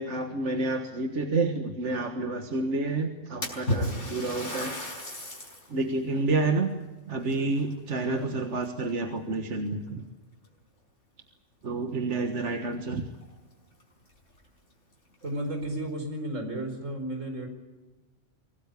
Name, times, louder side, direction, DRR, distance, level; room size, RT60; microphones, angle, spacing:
voice 1, 0.0-4.8 5.7-6.7 7.1-10.0 11.6-13.1, right 3 dB, 70° right, 5 dB, 1.9 m, -29 dB
Splash splatter, 3.4-5.7 6.2-6.3 7.2-8.3 8.6-9.1 9.9-10.0 10.4-10.5 12.7-12.8 13.1-13.2 13.8-13.9 14.3-14.4 15.1-15.7, left 1 dB, 70° left, 5.8 m, -34 dB
voice 2, 15.2-17.5, right 1 dB, 90° right, 5 dB, 5.0 m, -33 dB
25.0 x 18.0 x 8.4 m, 1.2 s
omnidirectional pair, 1.3 m